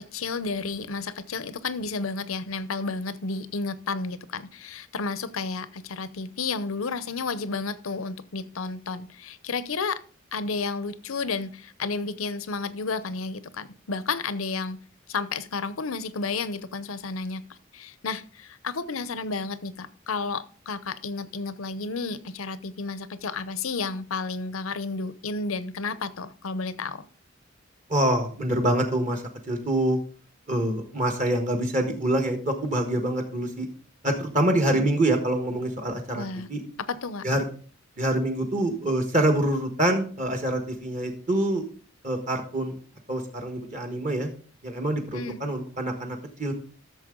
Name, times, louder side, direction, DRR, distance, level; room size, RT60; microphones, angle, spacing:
voice 1, 0.0-10.0 10.3-14.8 15.1-27.1 36.1-36.5 36.9-37.3 45.1-45.4, left 4 dB, 90° left, 15 dB, 0.7 m, -32 dB
voice 2, 27.9-30.0 30.5-33.7 34.0-36.2 36.5-36.6 37.2-37.4 38.0-41.6 42.0-42.7 43.1-44.3 44.6-46.5, right 1 dB, 35° right, 4 dB, 1.4 m, -25 dB
13.5 x 6.9 x 3.8 m, 0.43 s
head